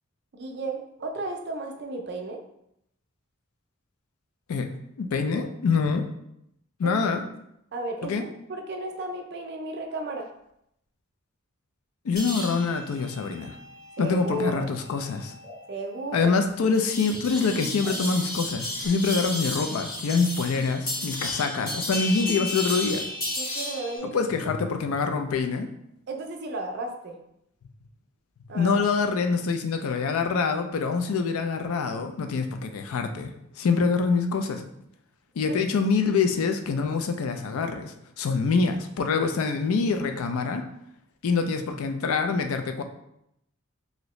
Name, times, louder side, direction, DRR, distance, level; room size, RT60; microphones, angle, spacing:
voice 1, 0.3-2.4 6.8-7.0 7.7-10.3 14.0-14.6 15.7-16.3 23.4-24.6 26.1-27.2 28.5-28.8 35.5-35.6, right 2 dB, 50° right, 2 dB, 0.4 m, -33 dB
voice 2, 4.5-6.0 6.8-7.2 8.0-8.2 12.0-13.6 14.0-15.3 16.1-23.0 24.0-25.7 28.5-34.6 35.4-40.7 41.2-42.8, left 4 dB, 80° left, 6 dB, 0.4 m, -25 dB
sound 1, 12.2-24.0, left 1 dB, 40° left, 1.1 m, -34 dB
sound 2, 15.4-15.6 17.8-18.0 18.8-18.9, left 1 dB, 20° left, 1.0 m, -44 dB
2.9 x 2.6 x 3.1 m, 0.78 s
head